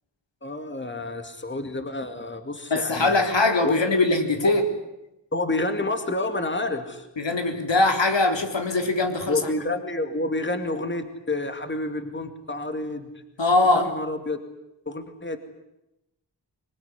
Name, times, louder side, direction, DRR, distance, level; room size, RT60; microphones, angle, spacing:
voice 1, 0.4-3.3 3.6-3.7 4.4-4.5 5.3-7.1 9.3-13.1 13.7-14.4 14.9-15.4, left 2 dB, 25° left, 7 dB, 2.3 m, -29 dB
voice 2, 2.7-4.6 7.2-9.4 13.4-13.9, left 2 dB, 75° left, 4 dB, 3.5 m, -21 dB
26.0 x 21.5 x 9.7 m, 0.90 s
wide cardioid pair, 85°, 45 cm